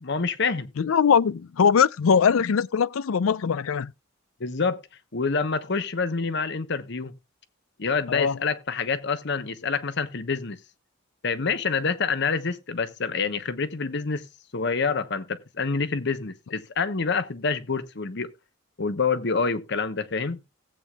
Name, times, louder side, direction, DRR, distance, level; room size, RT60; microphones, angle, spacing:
voice 1, 0.0-0.7 4.4-4.8 5.1-7.1 7.8-10.6 11.2-14.3 14.5-18.3 18.8-20.4, left 4 dB, 60° left, 1.0 m, -27 dB
voice 2, 0.8-3.9 8.1-8.4, left 6 dB, 85° left, 0.5 m, -21 dB
17.0 x 8.3 x 2.3 m
head